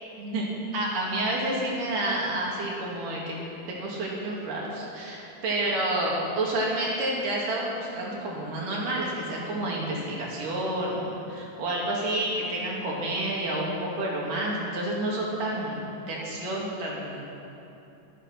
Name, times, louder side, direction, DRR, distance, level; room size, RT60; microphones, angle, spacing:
voice 1, 0.7-3.4 3.7-17.2, right 1 dB, 70° right, -4 dB, 4.0 m, -29 dB
15.5 x 13.0 x 6.1 m, 2.9 s
omnidirectional pair, 4.0 m